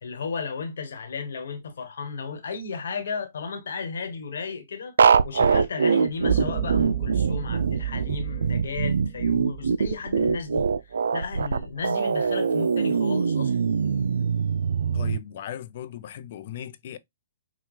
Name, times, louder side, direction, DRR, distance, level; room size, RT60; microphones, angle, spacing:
voice 1, 0.0-4.9 5.2-13.7, left 5 dB, 75° left, 1.2 m, -34 dB
sound 1, 5.0-15.2, right 6 dB, 85° right, 0.3 m, -23 dB
sound 2, 6.3-10.6, right 11 dB, 40° right, 0.6 m, -31 dB
voice 2, 14.9-17.0, left 11 dB, 50° left, 0.5 m, -37 dB
5.6 x 2.3 x 3.0 m
hypercardioid pair, 145°, 0 cm